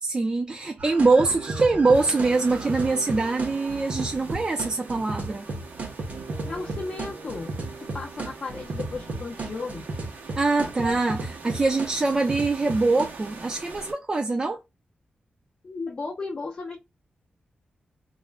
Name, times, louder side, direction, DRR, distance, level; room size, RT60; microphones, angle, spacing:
voice 1, 0.0-5.4 10.4-14.6, right 3 dB, 25° right, 0.3 m, -23 dB
sound 1, 0.8-13.1, right 3 dB, 55° right, 0.7 m, -34 dB
sound 2, 1.9-13.9, right 3 dB, 85° right, 0.8 m, -44 dB
voice 2, 6.4-9.8 10.6-10.7 15.6-16.8, left 3 dB, 40° left, 0.5 m, -35 dB
2.4 x 2.1 x 3.1 m
wide cardioid pair, 165°, 3 cm